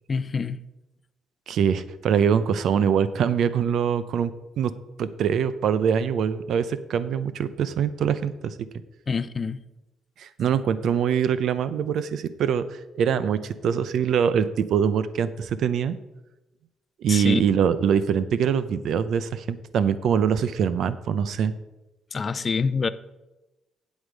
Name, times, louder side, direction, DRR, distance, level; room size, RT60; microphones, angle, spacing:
voice 1, 0.1-0.6 9.1-9.6 17.1-17.4 22.1-22.9, left 5 dB, 35° left, 15 dB, 0.5 m, -26 dB
voice 2, 1.5-4.3 4.6-4.7 5.0-8.5 10.2-12.6 13.0-16.0 17.0-21.5, right 7 dB, 70° right, 14 dB, 0.6 m, -23 dB
8.4 x 8.0 x 5.2 m, 1.0 s
cardioid pair, 90°, 0 cm